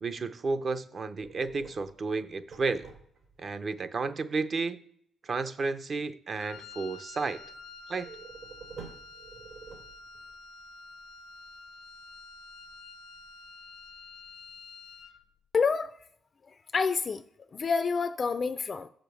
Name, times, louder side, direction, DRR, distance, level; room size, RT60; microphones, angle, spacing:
voice 1, 0.0-2.9 3.4-4.8 5.3-7.4 7.9-8.1, right 4 dB, 45° right, 0.6 m, -32 dB
sound 1, 1.2-3.5 8.0-10.3, right 5 dB, 70° right, 2.3 m, -48 dB
Wind instrument woodwind instrument, 6.3-15.2, left 4 dB, 85° left, 0.7 m, -49 dB
voice 2, 15.5-15.9 16.5-17.2 17.5-18.9, left 5 dB, 40° left, 0.3 m, -28 dB
6.8 x 5.0 x 6.2 m
cardioid pair, 90°, 0 cm